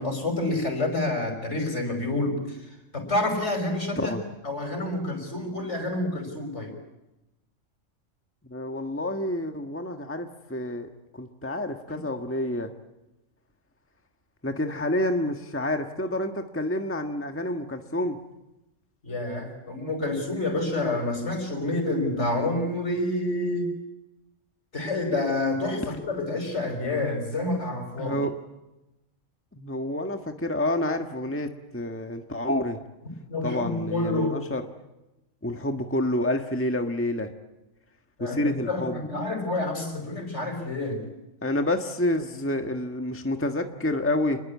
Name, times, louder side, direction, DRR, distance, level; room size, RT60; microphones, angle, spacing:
voice 1, 0.0-2.6 2.9-4.1 4.4-6.7 11.9-12.0 19.0-23.8 24.7-28.2 33.3-34.4 38.2-41.0, left 2 dB, 65° left, 6 dB, 5.5 m, -28 dB
voice 2, 8.5-12.7 14.4-18.2 28.0-28.3 29.5-32.8 33.4-34.6 35.4-37.3 38.2-39.0 41.4-44.4, left 1 dB, 10° left, 5 dB, 1.5 m, -28 dB
28.5 x 21.0 x 8.4 m, 0.96 s
omnidirectional pair, 1.3 m